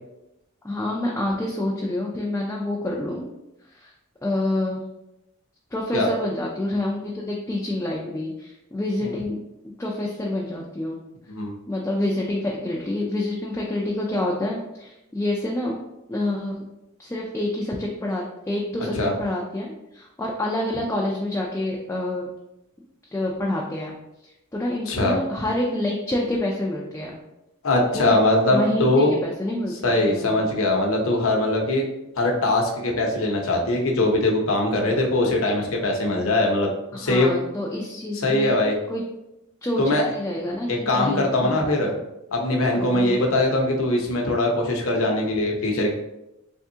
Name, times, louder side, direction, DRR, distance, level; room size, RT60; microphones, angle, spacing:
voice 1, 0.6-3.3 3.7-3.9 4.2-4.8 5.7-11.0 11.7-15.7 16.1-16.6 17.0-22.3 23.1-24.0 24.5-27.2 27.9-28.2 28.5-30.5 37.0-38.5 38.9-39.0 39.6-41.6 42.7-43.2, left 1 dB, 10° left, -3 dB, 0.3 m, -27 dB
voice 2, 27.6-29.2 29.8-31.8 32.2-37.3 38.2-38.8 39.8-40.0 40.7-42.0 42.3-45.9, left 2 dB, 70° left, 1 dB, 0.7 m, -21 dB
3.5 x 3.4 x 2.7 m, 0.91 s
head